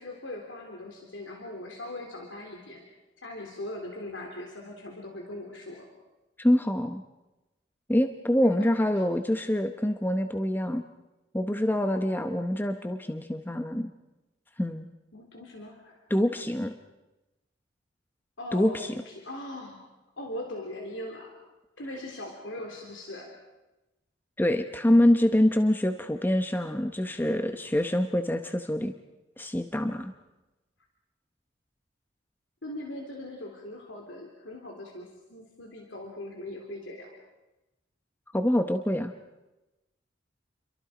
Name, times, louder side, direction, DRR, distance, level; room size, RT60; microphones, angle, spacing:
voice 1, 0.0-2.8 3.2-5.9 8.4-8.8 15.1-16.0 18.4-19.8 20.2-21.3 21.8-23.3 32.6-37.1, left 1 dB, 85° left, 1 dB, 3.4 m, -40 dB
voice 2, 6.4-7.0 7.9-10.8 11.3-13.9 14.6-14.9 16.1-16.7 18.5-18.9 24.4-28.9 29.4-30.1 38.3-39.1, left 1 dB, 10° left, 7 dB, 0.9 m, -25 dB
29.0 x 23.5 x 5.0 m, 1.0 s
head